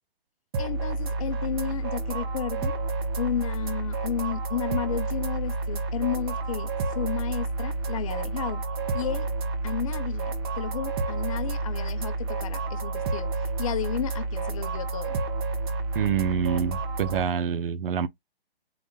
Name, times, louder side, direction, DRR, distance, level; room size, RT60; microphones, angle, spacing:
sound 1, 0.5-17.2, right 3 dB, 25° right, 0.6 m, -30 dB
voice 1, 0.6-2.8 3.2-6.7 6.9-8.6 8.9-9.3 9.6-15.1, left 10 dB, 35° left, 0.6 m, -33 dB
voice 2, 15.9-18.1, right 7 dB, 60° right, 0.6 m, -26 dB
3.9 x 3.5 x 2.7 m
hypercardioid pair, 150°, 31 cm